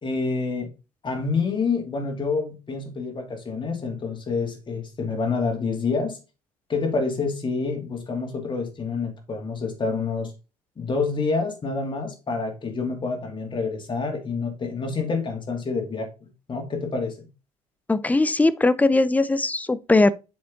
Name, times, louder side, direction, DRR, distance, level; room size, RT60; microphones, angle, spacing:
voice 1, 0.0-0.7 1.0-6.2 6.7-10.3 10.8-16.1 16.5-17.2, left 4 dB, 25° left, 2.6 m, -27 dB
voice 2, 17.9-20.1, left 2 dB, 10° left, 0.5 m, -20 dB
7.5 x 5.5 x 3.7 m
figure-of-eight pair, 60°, 19 cm